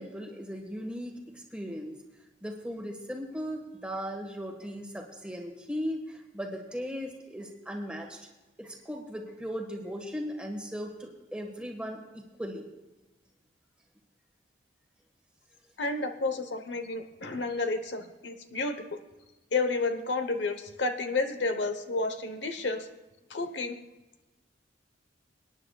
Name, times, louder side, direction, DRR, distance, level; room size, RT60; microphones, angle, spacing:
voice 1, 0.0-2.0 2.4-8.3 8.6-12.7, equal, 5° right, 1 dB, 1.5 m, -37 dB
voice 2, 15.8-19.0 19.5-22.9 23.3-23.8, left 3 dB, 75° left, 8 dB, 1.0 m, -31 dB
25.5 x 9.8 x 2.4 m, 1.1 s
head